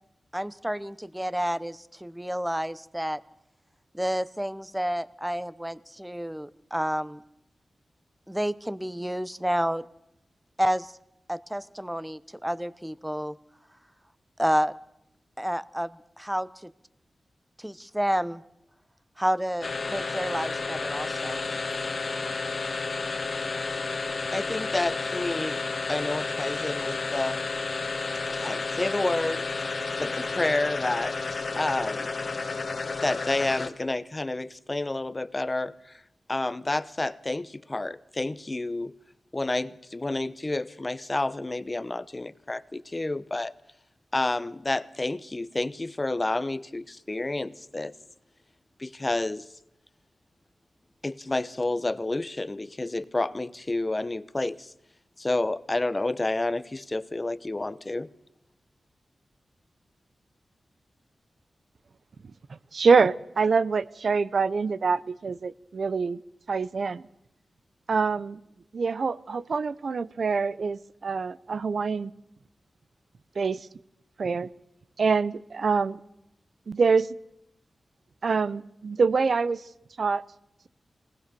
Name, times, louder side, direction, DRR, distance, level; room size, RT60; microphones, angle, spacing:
voice 1, 0.3-3.2 3.9-7.2 8.3-9.8 10.6-10.9 11.3-13.3 14.4-14.7 15.4-16.7 17.6-18.4 19.2-21.5, equal, 5° right, 0.8 m, -30 dB
sound 1, 19.6-33.9, left 4 dB, 50° left, 1.5 m, -31 dB
voice 2, 24.3-25.6 25.9-27.4 28.3-32.1 32.8-36.0 36.3-38.9 39.3-43.5 44.1-47.9 48.8-49.5 51.0-54.7 55.2-58.1, left 2 dB, 25° left, 0.8 m, -30 dB
voice 3, 62.5-66.2 66.5-67.0 67.9-68.4 68.7-72.1 73.4-73.6 74.2-74.5 75.0-76.0 76.7-77.1 78.2-79.6 80.0-80.2, right 5 dB, 65° right, 0.7 m, -25 dB
23.5 x 18.5 x 6.9 m
wide cardioid pair, 105°, 0 cm